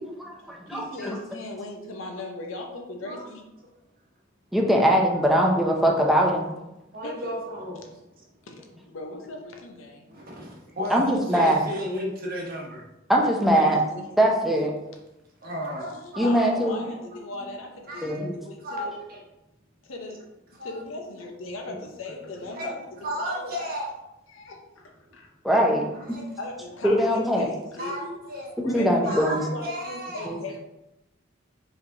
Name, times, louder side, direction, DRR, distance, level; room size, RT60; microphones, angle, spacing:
voice 1, 0.2-1.2 4.5-6.4 10.9-11.6 13.1-13.8 14.2-14.7 16.2-16.8 18.0-18.4 25.4-25.8 26.8-27.5 28.6-29.4 30.3-30.4, equal, ahead, -1 dB, 0.6 m, -21 dB
voice 2, 0.7-3.4 7.0-7.1 8.5-10.1 13.5-14.1 15.9-19.0 19.8-20.2 20.6-23.8 24.3-25.3 26.4-28.0 28.6-30.6, left 2 dB, 85° left, 3 dB, 0.7 m, -38 dB
voice 3, 6.9-8.3 10.1-12.8 13.7-14.0 14.4-14.8 15.4-16.8 17.9-18.4 18.6-19.2 20.6-20.8 21.7-21.8 22.4-22.7 23.0-23.9 25.8-26.3 27.8-28.5 29.0-30.3, equal, 50° right, -2 dB, 1.0 m, -34 dB
4.9 x 3.2 x 2.6 m, 0.94 s
head